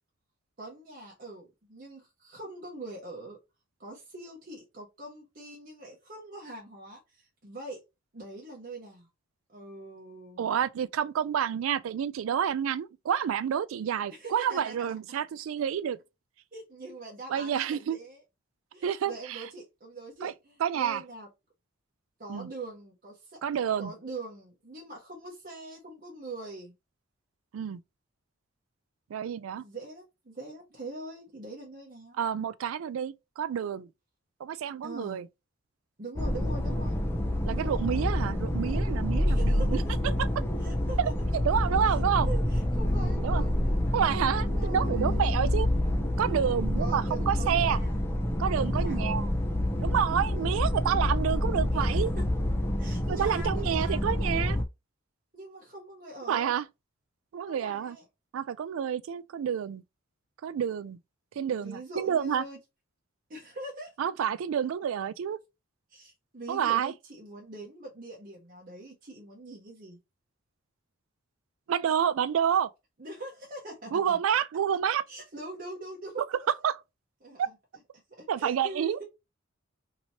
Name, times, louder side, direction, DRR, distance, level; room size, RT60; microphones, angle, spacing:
voice 1, 0.6-3.4 3.8-7.8 8.1-9.1 9.5-10.5 14.1-15.2 16.5-18.2 18.7-21.3 22.2-23.4 23.8-26.7 29.5-32.2 34.8-35.2 36.0-37.0 37.5-37.8 39.3-39.8 40.6-41.0 42.3-43.8 44.4-45.3 46.2-48.0 48.6-49.3 50.4-50.6 51.7-51.9 52.2-52.3 52.8-54.0 55.3-56.6 57.5-58.0 61.5-62.6 63.3-63.9 65.9-70.0 73.0-74.2 75.1-76.5 77.2-77.5 78.1-79.0, right 2 dB, 45° right, 1.0 m, -43 dB
voice 2, 10.4-16.0 17.3-18.0 18.8-19.4 20.2-20.3 20.6-21.0 22.3-22.5 23.4-23.9 27.5-27.8 29.1-29.6 32.2-33.9 34.4-35.3 37.4-40.3 41.0-41.1 41.4-42.3 43.2-43.4 43.9-45.7 46.2-47.8 48.4-49.3 49.8-52.1 53.1-54.6 56.3-56.7 57.3-58.0 58.3-59.8 60.4-61.0 61.4-62.4 64.0-65.4 66.5-66.9 71.7-72.7 73.9-75.1 76.6-76.8 77.4-77.5 78.3-79.0, right 8 dB, 80° right, 0.3 m, -29 dB
sound 1, 36.2-54.6, left 1 dB, 10° left, 0.5 m, -28 dB
2.9 x 2.8 x 2.9 m
head